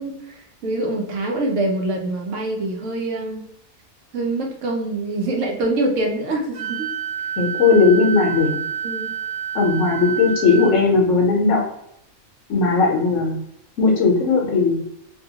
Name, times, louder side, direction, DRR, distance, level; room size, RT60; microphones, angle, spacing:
voice 1, 0.0-3.5 4.1-6.9 8.8-9.1, right 2 dB, 65° right, 1 dB, 0.9 m, -25 dB
Wind instrument woodwind instrument, 6.5-10.7, right 8 dB, 85° right, 1.1 m, -28 dB
voice 2, 7.4-8.6 9.5-11.6 12.5-13.4 13.8-14.8, left 4 dB, 65° left, -1 dB, 0.9 m, -17 dB
2.6 x 2.3 x 2.8 m, 0.75 s
omnidirectional pair, 1.5 m